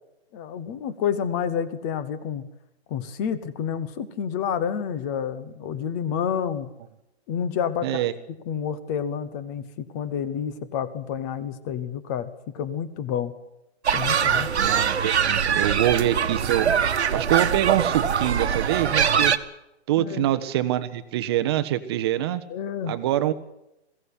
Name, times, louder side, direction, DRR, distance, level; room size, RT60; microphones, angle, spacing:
voice 1, 0.3-2.4 2.9-6.7 7.3-8.0 8.5-13.3 13.9-14.5 20.0-20.3 22.5-23.0, left 8 dB, 15° left, 14 dB, 1.0 m, -29 dB
voice 2, 7.8-8.1 14.6-16.8 17.1-19.3 19.9-22.4 22.9-23.3, right 13 dB, 25° right, 12 dB, 1.1 m, -25 dB
sound 1, 13.8-19.4, right 7 dB, 80° right, 1.7 m, -23 dB
22.0 x 16.5 x 8.2 m, 0.89 s
hypercardioid pair, 165°, 33 cm